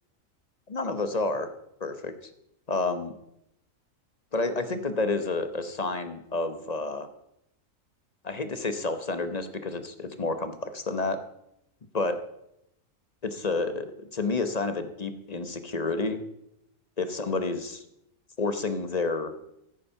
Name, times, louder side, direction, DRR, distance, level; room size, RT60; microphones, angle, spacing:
voice 1, 0.7-1.5 1.8-2.1 2.7-3.1 4.3-7.1 8.2-11.2 11.9-12.2 13.2-16.2 17.0-17.8 18.4-19.3, left 3 dB, 30° left, 10 dB, 1.0 m, -29 dB
14.5 x 8.5 x 5.6 m, 0.80 s
omnidirectional pair, 1.4 m